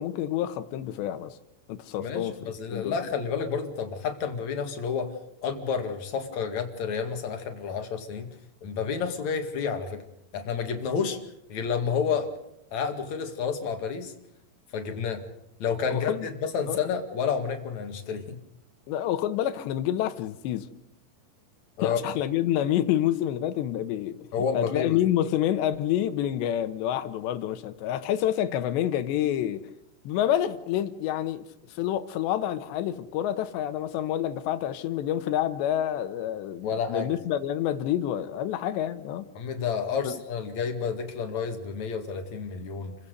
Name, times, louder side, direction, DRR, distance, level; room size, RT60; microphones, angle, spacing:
voice 1, 0.0-1.4 1.7-2.3 2.7-3.0 15.9-16.3 16.7-16.8 18.9-20.7 21.8-24.1 24.5-29.7 30.0-31.4 31.7-39.3 40.0-40.2, left 11 dB, 80° left, 3.2 m, -28 dB
voice 2, 2.0-5.1 5.4-8.3 8.6-10.0 10.3-11.2 11.5-12.3 12.7-14.1 14.7-15.2 15.6-18.4 21.8-22.0 24.3-25.0 36.6-37.1 39.4-43.0, left 6 dB, 50° left, 2.8 m, -30 dB
30.0 x 15.5 x 6.7 m
omnidirectional pair, 5.2 m